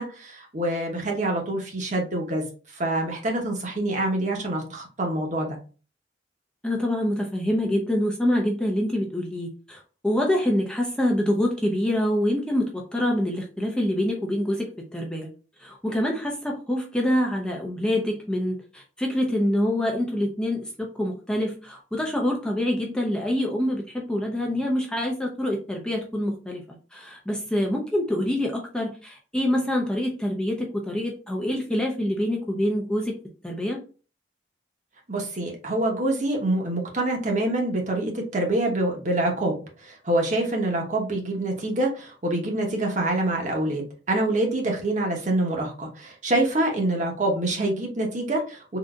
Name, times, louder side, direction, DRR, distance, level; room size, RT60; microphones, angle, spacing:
voice 1, 0.0-2.4 2.7-5.6 35.1-48.8, right 1 dB, 45° right, 1 dB, 0.9 m, -26 dB
voice 2, 6.6-14.7 14.9-15.3 15.6-26.6 26.9-33.2 33.4-33.8, left 1 dB, 5° left, -1 dB, 0.5 m, -26 dB
3.8 x 2.6 x 2.3 m, 0.36 s
head